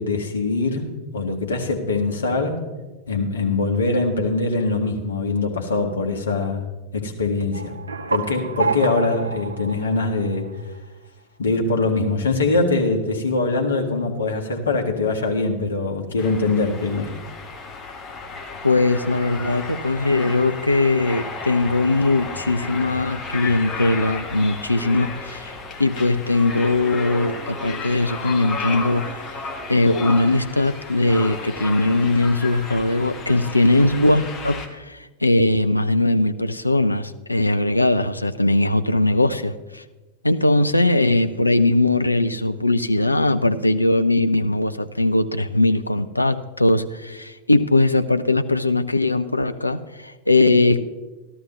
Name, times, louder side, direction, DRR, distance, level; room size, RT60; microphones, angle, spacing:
voice 1, 0.0-2.6 3.1-6.6 6.9-7.8 8.1-10.5 11.4-17.1, left 3 dB, 70° left, 2 dB, 1.5 m, -23 dB
sound 1, 7.5-10.8, right 4 dB, 75° right, 0.5 m, -29 dB
sound 2, 16.2-34.7, left 4 dB, 25° left, 1.4 m, -33 dB
voice 2, 18.6-25.5 25.8-29.2 29.7-39.8 40.2-50.8, left 2 dB, 85° left, 10 dB, 0.4 m, -20 dB
14.0 x 12.5 x 3.1 m, 1.2 s
figure-of-eight pair, 90°, 0 cm